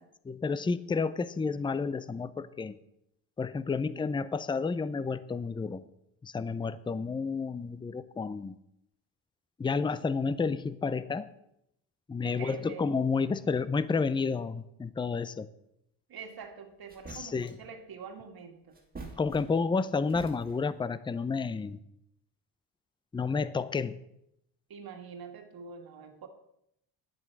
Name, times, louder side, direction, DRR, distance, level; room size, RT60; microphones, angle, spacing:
voice 1, 0.3-2.8 3.4-5.8 6.2-8.6 9.6-11.3 12.1-15.5 17.1-17.5 19.2-21.8 23.1-24.0, left 4 dB, 10° left, 15 dB, 0.5 m, -30 dB
voice 2, 12.2-12.9 16.1-18.8 24.7-26.3, right 6 dB, 50° right, 5 dB, 1.9 m, -45 dB
sound 1, 16.4-16.5 16.9-17.7 18.7-19.8 20.1-20.8, right 3 dB, 20° right, 2.3 m, -47 dB
10.5 x 7.8 x 6.0 m, 0.79 s
cardioid pair, 105°, 45 cm